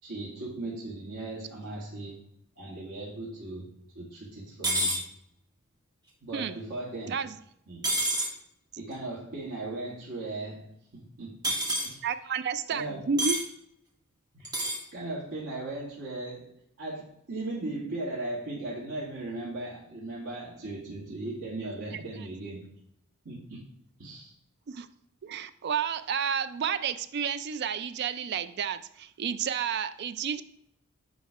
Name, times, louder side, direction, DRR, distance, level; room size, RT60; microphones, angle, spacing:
voice 1, 0.0-2.2 2.6-3.7 3.9-5.0 6.2-7.3 7.7-7.9 8.8-11.6 11.8-12.0 12.7-13.0 14.3-14.5 14.9-22.7 23.3-23.7 24.0-24.3, right 2 dB, 85° right, -8 dB, 1.8 m, -37 dB
sound 1, 4.6-5.0 7.8-8.3 11.4-11.9 13.2-13.4 14.4-14.8, right 1 dB, 20° right, 1.3 m, -27 dB
voice 2, 12.0-13.4 24.7-24.9 25.2-30.4, right 6 dB, 50° right, 13 dB, 0.3 m, -31 dB
9.3 x 3.2 x 4.8 m, 0.75 s
head